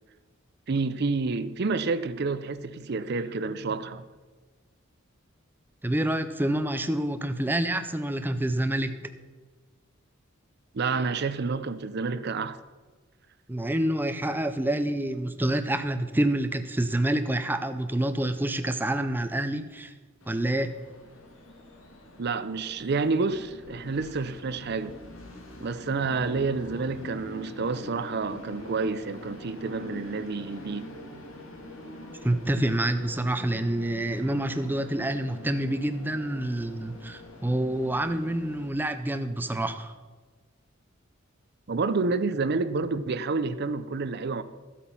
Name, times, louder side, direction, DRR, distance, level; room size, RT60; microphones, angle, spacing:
voice 1, 0.7-4.0 10.7-12.6 22.2-24.9 25.6-30.9 41.7-44.4, right 4 dB, 55° right, 0.6 m, -29 dB
voice 2, 5.8-9.1 13.5-19.9 20.3-20.7 32.2-39.9, right 1 dB, 10° right, 0.6 m, -27 dB
Train, 20.2-38.7, left 1 dB, 85° left, 2.5 m, -45 dB
14.0 x 8.3 x 5.8 m
head